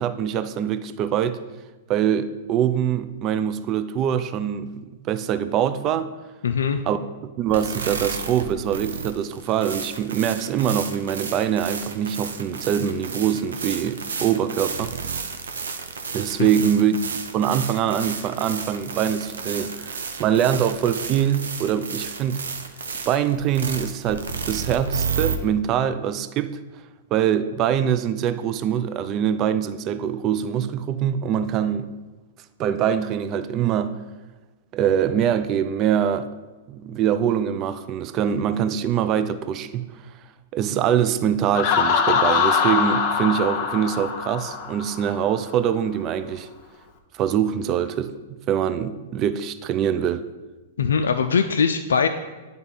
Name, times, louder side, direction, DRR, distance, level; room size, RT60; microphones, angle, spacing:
voice 1, 0.0-1.4 1.9-6.1 6.9-14.9 16.1-22.4 23.1-26.6 27.1-31.9 32.6-34.0 34.7-36.3 36.7-39.8 40.5-46.5 47.1-48.1 48.5-50.2, right 9 dB, 35° right, 0.4 m, -23 dB
voice 2, 6.4-6.8 50.8-52.1, left 6 dB, 80° left, 0.3 m, -21 dB
sound 1, 7.5-25.4, right 5 dB, 80° right, 0.7 m, -32 dB
Laughter, 41.5-45.2, left 6 dB, 45° left, 0.8 m, -22 dB
9.3 x 3.5 x 4.0 m
hypercardioid pair, 115°, 0 cm